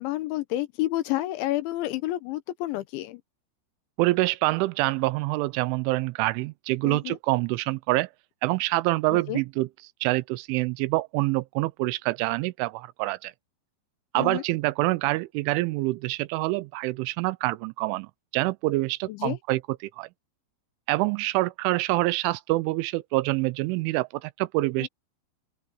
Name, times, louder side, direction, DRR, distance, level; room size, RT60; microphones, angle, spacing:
voice 1, 0.0-3.2 6.8-7.2 9.1-9.4 14.1-14.4 19.1-19.4 24.8-24.9, left 16 dB, 80° left, 3.3 m, -30 dB
voice 2, 4.0-8.1 8.4-9.7 10.0-13.3 14.1-20.1 20.9-24.9, right 20 dB, 90° right, 3.1 m, -26 dB
open air
omnidirectional pair, 5.5 m